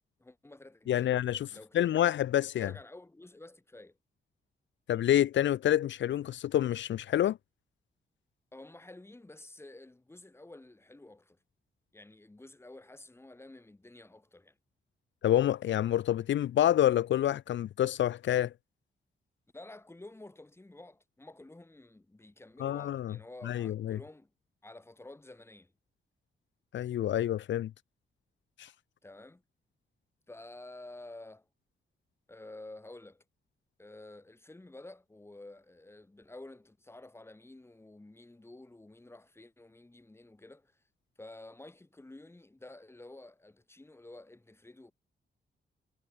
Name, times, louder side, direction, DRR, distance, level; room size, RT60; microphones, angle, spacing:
voice 1, 0.0-1.2 1.5-2.1 2.6-4.0 8.5-11.4 11.9-14.6 19.5-24.3 24.6-25.7 29.0-29.4 30.3-31.5 32.3-33.2 33.8-40.8 41.2-44.9, left 2 dB, 15° left, 5.0 m, -51 dB
voice 2, 0.9-1.5 1.7-2.7 4.9-7.4 15.2-18.5 22.6-23.2 23.4-24.0 26.7-27.7 28.6-28.7, left 11 dB, 75° left, 0.5 m, -28 dB
wide cardioid pair, 155°, 19 cm